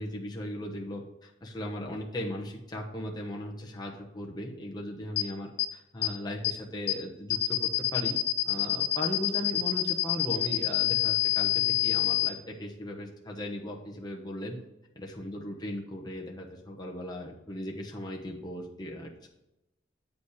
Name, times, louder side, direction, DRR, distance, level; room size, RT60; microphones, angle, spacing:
voice 1, 0.0-8.2 8.4-14.6 15.0-19.3, left 1 dB, 20° left, -1 dB, 1.0 m, -37 dB
sound 1, 5.2-5.3 5.6-5.7 6.0-6.1 6.4-6.5 6.9-7.0 7.3-12.3, left 15 dB, 55° left, 0.9 m, -26 dB
8.4 x 5.1 x 4.9 m, 0.90 s
head